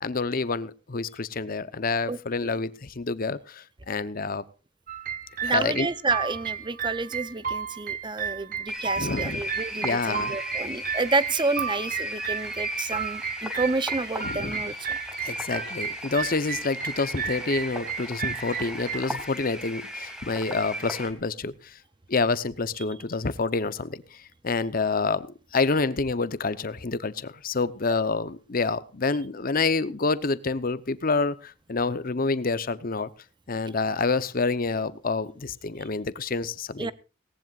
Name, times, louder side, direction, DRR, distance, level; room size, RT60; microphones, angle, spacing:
voice 1, 0.0-4.4 5.4-5.9 9.0-9.4 9.8-10.3 14.2-14.6 15.2-21.7 22.1-24.0 24.4-25.3 25.5-33.1 33.5-36.9, left 3 dB, 45° left, 15 dB, 0.8 m, -28 dB
voice 2, 2.1-2.6 5.4-15.0 36.8-36.9, right 3 dB, 25° right, 16 dB, 0.6 m, -29 dB
sound 1, 4.9-19.0, right 7 dB, 45° right, 1.0 m, -33 dB
sound 2, 8.7-21.1, equal, 5° right, 2.7 m, -35 dB
18.5 x 18.0 x 2.4 m, 0.33 s
head